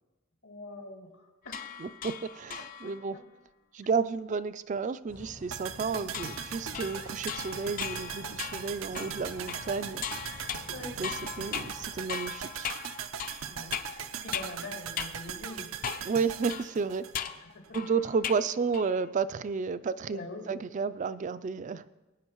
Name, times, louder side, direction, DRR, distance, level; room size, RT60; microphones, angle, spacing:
voice 1, 0.4-1.6 2.6-3.2 10.7-11.0 13.5-15.7 17.1-18.0 20.1-20.5, left 2 dB, 90° left, -2 dB, 2.6 m, -45 dB
sound 1, 1.5-3.1 6.1-14.6 15.0-15.2 15.8-16.2 16.5-18.5 18.7-19.1, left 8 dB, 40° left, 0.4 m, -39 dB
voice 2, 1.8-3.2 3.7-10.0 10.8-11.1 11.4-12.7 16.0-17.1 17.7-21.9, right 5 dB, 35° right, 15 dB, 0.3 m, -32 dB
sound 2, 5.1-12.0, left 1 dB, 60° left, 1.0 m, -49 dB
sound 3, 5.5-17.7 18.0-18.1, right 7 dB, 85° right, 0.6 m, -40 dB
19.5 x 9.5 x 3.0 m, 1.1 s
head